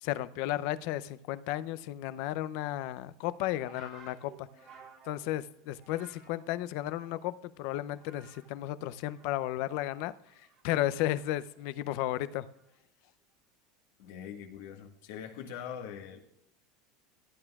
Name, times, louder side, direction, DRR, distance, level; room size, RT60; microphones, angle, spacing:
voice 1, 0.0-4.5 5.1-10.1 10.6-12.5, left 14 dB, 65° left, 0.5 m, -33 dB
sound 1, 3.5-7.4 7.7-8.6 8.9-11.6 12.5-12.8, right 6 dB, 40° right, 2.2 m, -56 dB
voice 2, 14.0-16.2, left 8 dB, 80° left, 1.6 m, -42 dB
15.5 x 8.9 x 2.4 m
supercardioid pair, 135°, 0 cm